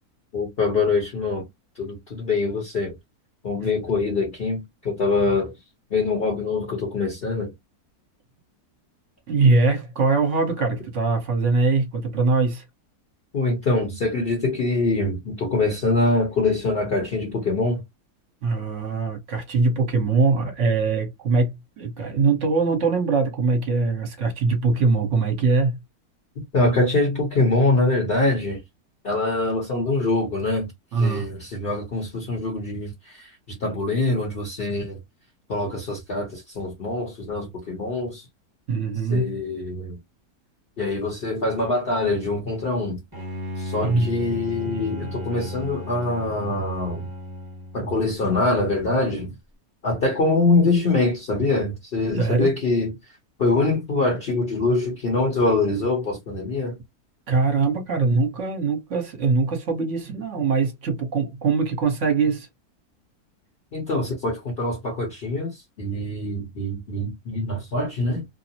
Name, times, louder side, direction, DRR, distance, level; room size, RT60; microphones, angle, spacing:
voice 1, 0.3-1.5 1.8-3.0 3.4-5.5 5.9-7.5 13.3-17.8 26.5-28.6 29.0-30.7 31.0-33.3 33.6-35.0 35.5-38.3 39.1-40.0 40.8-43.0 43.6-47.1 47.7-49.4 49.8-52.9 53.4-56.7 63.7-68.2, left 2 dB, 40° left, 1.0 m, -24 dB
voice 2, 9.3-12.6 18.4-25.8 30.9-31.3 38.7-39.3 43.8-44.1 52.1-52.5 57.3-62.5, right 4 dB, 50° right, 1.2 m, -22 dB
Bowed string instrument, 43.1-48.1, left 1 dB, 15° right, 1.0 m, -35 dB
2.9 x 2.0 x 2.8 m
omnidirectional pair, 1.7 m